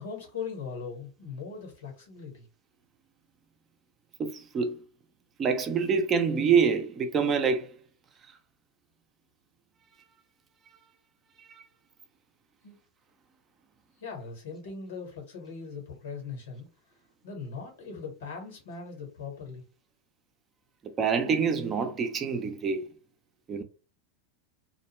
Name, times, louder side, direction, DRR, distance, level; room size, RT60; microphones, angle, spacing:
voice 1, 0.0-2.5 12.6-12.7 14.0-16.7 17.2-19.6, left 5 dB, 75° left, 1.4 m, -40 dB
voice 2, 4.2-4.8 5.4-7.7 11.5-11.6 21.0-22.8 23.5-23.6, right 6 dB, 30° right, 0.6 m, -26 dB
2.5 x 2.1 x 3.1 m
hypercardioid pair, 90°, 0 cm